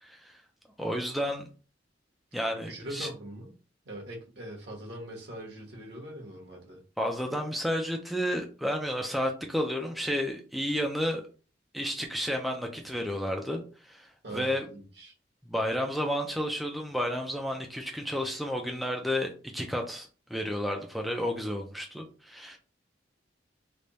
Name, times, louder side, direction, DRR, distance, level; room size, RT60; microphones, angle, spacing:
voice 1, 0.0-0.4 0.8-1.5 2.3-3.1 7.0-11.2 11.7-14.7 15.4-22.6, equal, ahead, 1 dB, 0.4 m, -31 dB
voice 2, 2.7-3.5 3.8-6.8 14.2-15.1, right 1 dB, 65° right, -1 dB, 1.2 m, -42 dB
3.3 x 2.2 x 4.0 m, 0.37 s
head